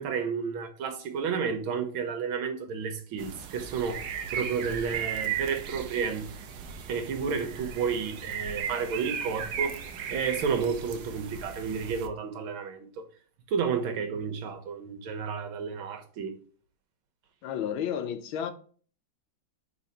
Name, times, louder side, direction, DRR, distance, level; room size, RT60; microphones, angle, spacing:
voice 1, 0.0-4.0 4.3-6.3 6.9-9.8 10.1-13.1 13.5-16.3, right 6 dB, 85° right, 1.8 m, -31 dB
sound 1, 3.2-12.1, right 7 dB, 65° right, 1.1 m, -36 dB
voice 2, 17.4-18.5, left 9 dB, 80° left, 1.5 m, -31 dB
5.5 x 3.6 x 5.4 m
omnidirectional pair, 2.2 m